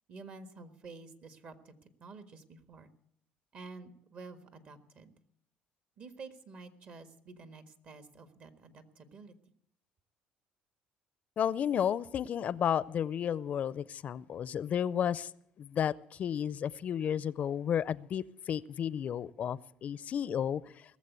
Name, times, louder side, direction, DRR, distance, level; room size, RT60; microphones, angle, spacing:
voice 1, 0.1-1.7 2.0-2.9 3.5-5.2 6.0-9.3, right 4 dB, 55° right, 9 dB, 1.6 m, -50 dB
voice 2, 11.4-15.3 15.6-20.6, left 9 dB, 50° left, 20 dB, 0.5 m, -32 dB
18.5 x 7.4 x 8.2 m, 0.70 s
supercardioid pair, 85°, 3 cm